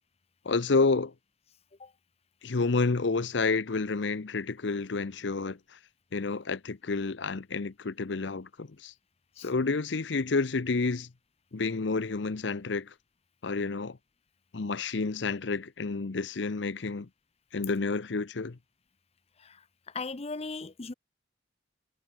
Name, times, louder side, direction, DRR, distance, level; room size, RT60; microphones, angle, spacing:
voice 1, 0.4-1.1 2.4-5.8 6.1-8.9 9.4-11.1 11.5-12.9 13.4-14.0 14.5-17.1 17.5-18.6, left 3 dB, 70° left, 0.7 m, -29 dB
voice 2, 19.4-20.9, left 3 dB, 35° left, 0.8 m, -38 dB
head